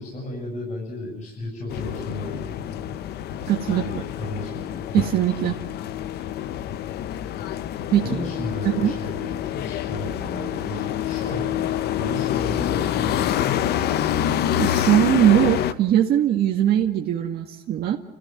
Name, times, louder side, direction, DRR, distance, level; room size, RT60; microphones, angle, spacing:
voice 1, 0.0-2.5 3.7-5.0 8.0-13.8, left 2 dB, 50° left, 0 dB, 7.9 m, -34 dB
sound 1, 1.7-15.7, left 11 dB, 75° left, 1.0 m, -27 dB
voice 2, 3.5-3.8 4.9-5.6 7.9-8.0 8.8-8.9 14.6-18.0, right 11 dB, 70° right, 1 dB, 1.9 m, -20 dB
30.0 x 15.5 x 9.5 m, 0.99 s
cardioid pair, 110°, 17 cm